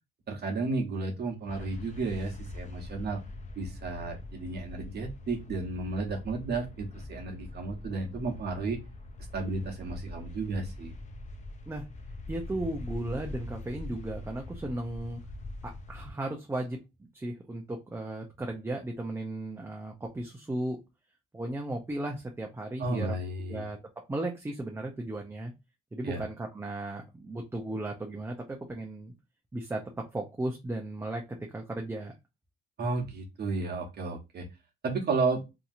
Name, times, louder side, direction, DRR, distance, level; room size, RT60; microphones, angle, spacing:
voice 1, 0.3-3.2 3.6-8.8 9.3-10.9 22.8-23.7 26.0-26.2 32.8-34.5 34.8-35.5, right 3 dB, 55° right, 2 dB, 0.9 m, -33 dB
sound 1, 1.5-16.1, left 2 dB, 35° left, 0.5 m, -43 dB
voice 2, 12.3-15.2 15.6-16.8 17.1-20.8 21.3-23.1 23.5-23.8 24.1-25.5 25.9-29.1 29.5-32.1, right 1 dB, 10° right, 1 dB, 0.5 m, -35 dB
2.8 x 2.6 x 2.5 m, 0.24 s
cardioid pair, 90°, 20 cm